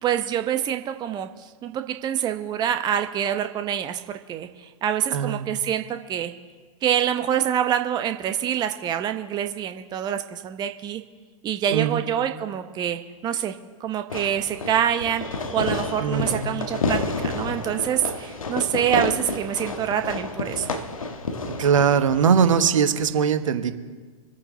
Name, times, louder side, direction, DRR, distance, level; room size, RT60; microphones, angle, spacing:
voice 1, 0.0-1.3 1.6-4.0 4.3-4.5 4.8-6.3 6.8-11.0 11.4-15.2 15.5-20.7, right 10 dB, 25° right, 7 dB, 0.8 m, -26 dB
voice 2, 5.1-5.5 11.7-12.0 16.0-16.6 21.6-23.7, right 7 dB, 70° right, 9 dB, 1.2 m, -21 dB
Fireworks, 14.1-23.1, left 3 dB, 75° left, 1.4 m, -30 dB
26.0 x 9.0 x 3.8 m, 1.5 s
figure-of-eight pair, 105°, 17 cm